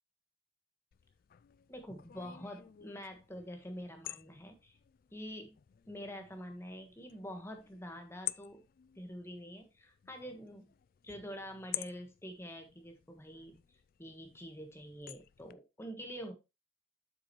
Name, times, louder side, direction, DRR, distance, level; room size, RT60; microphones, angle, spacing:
sound 1, 0.9-15.5, left 15 dB, 50° left, 0.3 m, -50 dB
voice 1, 1.7-4.8 5.1-5.6 5.9-8.6 8.9-10.7 11.0-13.6 14.0-16.3, equal, 15° left, 4 dB, 1.4 m, -46 dB
7.8 x 6.0 x 3.1 m, 0.25 s
head